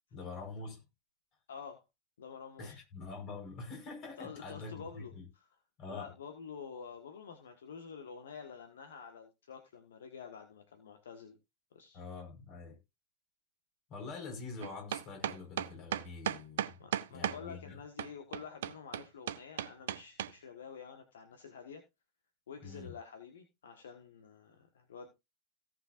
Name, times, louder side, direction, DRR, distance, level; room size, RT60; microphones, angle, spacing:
voice 1, 0.1-0.8 2.6-5.3 5.8-6.1 11.9-12.8 13.9-16.8 17.1-17.8 22.6-23.0, left 4 dB, 35° left, 5.0 m, -45 dB
voice 2, 1.5-1.8 2.2-2.8 4.2-5.5 5.9-11.4 11.7-12.0 16.8-21.8 22.5-25.1, left 6 dB, 65° left, 1.5 m, -48 dB
sound 1, 14.6-17.4 18.0-20.3, right 11 dB, 60° right, 0.6 m, -35 dB
17.5 x 6.8 x 2.6 m
figure-of-eight pair, 90°, 0 cm